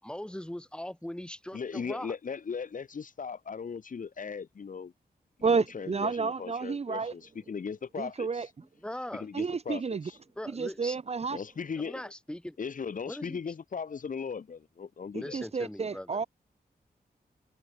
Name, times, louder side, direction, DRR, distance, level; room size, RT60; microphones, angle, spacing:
voice 1, 0.0-2.1 8.8-9.3 10.4-11.0 11.8-12.6 13.0-13.4 15.2-16.1, left 1 dB, 5° left, 6.1 m, -40 dB
voice 2, 1.5-4.9 5.4-8.4 9.1-10.2 11.3-12.0 12.6-15.4, left 6 dB, 55° left, 2.5 m, -38 dB
voice 3, 5.4-7.1 8.0-8.5 9.3-10.1 10.5-11.4 15.3-16.3, right 5 dB, 40° right, 1.2 m, -30 dB
wide cardioid pair, 175°, 17 cm